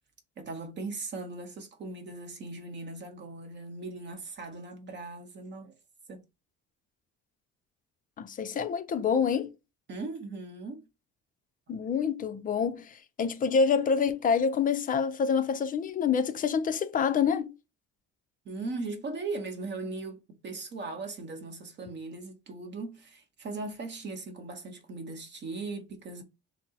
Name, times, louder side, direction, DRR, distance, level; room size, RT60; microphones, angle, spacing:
voice 1, 0.4-5.7 6.1-6.2 9.9-10.9 11.8-11.9 18.5-26.2, right 3 dB, 40° right, 0.8 m, -39 dB
voice 2, 8.2-9.5 11.7-17.5, left 6 dB, 30° left, 0.4 m, -27 dB
5.9 x 2.0 x 2.7 m
cardioid pair, 135°, 30 cm